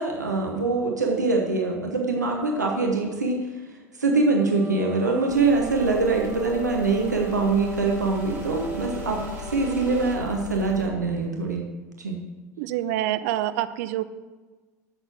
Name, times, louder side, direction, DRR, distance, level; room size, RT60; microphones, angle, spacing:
voice 1, 0.0-3.5 4.0-11.6 12.0-12.2, right 3 dB, 85° right, 1 dB, 1.0 m, -24 dB
sound 1, 4.2-10.2, left 1 dB, 20° right, 3.6 m, -39 dB
sound 2, 5.3-10.9, left 2 dB, 85° left, 1.1 m, -39 dB
voice 2, 12.6-14.0, right 13 dB, 60° right, 13 dB, 0.5 m, -26 dB
9.2 x 6.6 x 6.0 m, 1.3 s
figure-of-eight pair, 70°, 9 cm